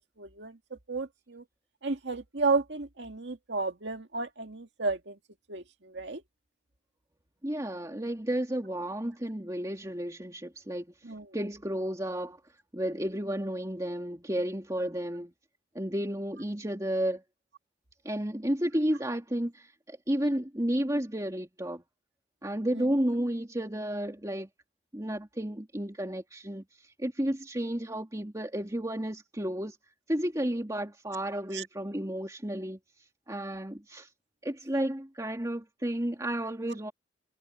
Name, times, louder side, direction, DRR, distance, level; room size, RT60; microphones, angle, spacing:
voice 1, 0.0-1.4 1.8-5.2 5.5-6.2 11.0-11.3 22.7-22.9 31.5-31.6, right 3 dB, 80° right, 1.9 m, -33 dB
voice 2, 7.4-12.4 12.7-15.3 15.7-17.2 18.0-21.8 22.4-24.5 24.9-29.8 30.1-32.8 33.3-34.1 34.4-36.9, right 1 dB, 20° right, 2.5 m, -32 dB
head